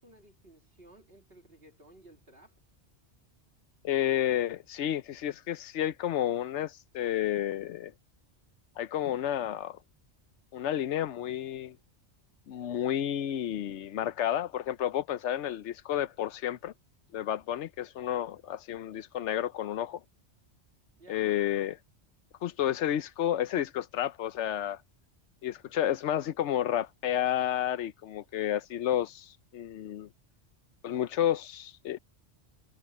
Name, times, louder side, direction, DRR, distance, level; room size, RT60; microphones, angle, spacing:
voice 1, 0.0-2.6 21.0-21.4, right 1 dB, 60° right, 2.8 m, -56 dB
voice 2, 3.8-7.9 8.8-9.8 10.5-11.8 12.5-16.7 17.1-20.0 21.1-21.8 22.4-24.8 25.4-30.1 30.8-32.0, left 11 dB, 85° left, 1.0 m, -31 dB
omnidirectional pair, 1.2 m